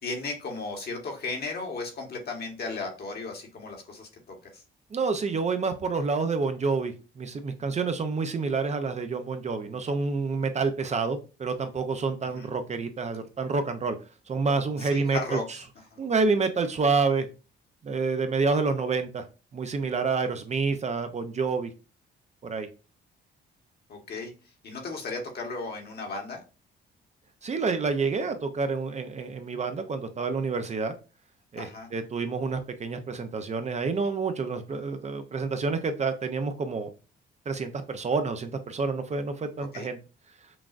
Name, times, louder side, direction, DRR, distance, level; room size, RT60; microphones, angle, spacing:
voice 1, 0.0-4.6 12.3-12.5 14.8-15.4 15.9-16.0 23.9-24.3 24.6-26.4 31.6-31.9 39.6-39.9, left 3 dB, 55° left, 2 dB, 1.3 m, -35 dB
voice 2, 4.9-14.0 14.3-15.4 16.0-17.3 17.8-19.2 19.5-21.7 22.4-22.7 27.4-30.9 31.5-36.9 37.5-40.0, right 4 dB, 35° right, 8 dB, 0.5 m, -28 dB
5.9 x 2.4 x 2.4 m, 0.32 s
cardioid pair, 90°, 20 cm